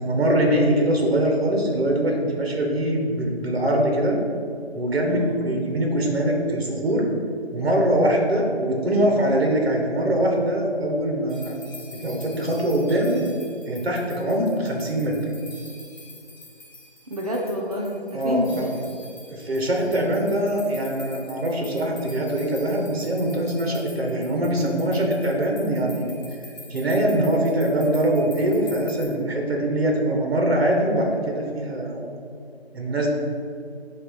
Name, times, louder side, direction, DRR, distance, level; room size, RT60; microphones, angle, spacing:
voice 1, 0.0-4.2 4.7-7.1 7.5-11.5 11.9-13.2 13.7-15.2 18.1-18.7 19.3-26.1 26.7-32.2 32.7-33.1, right 1 dB, 65° right, 0 dB, 1.7 m, -23 dB
voice 2, 5.1-5.5 17.1-18.7, left 1 dB, 35° right, -1 dB, 0.7 m, -27 dB
sound 1, 11.3-29.0, left 2 dB, 20° left, 1.5 m, -46 dB
8.0 x 3.2 x 5.9 m, 2.4 s
figure-of-eight pair, 160°, 32 cm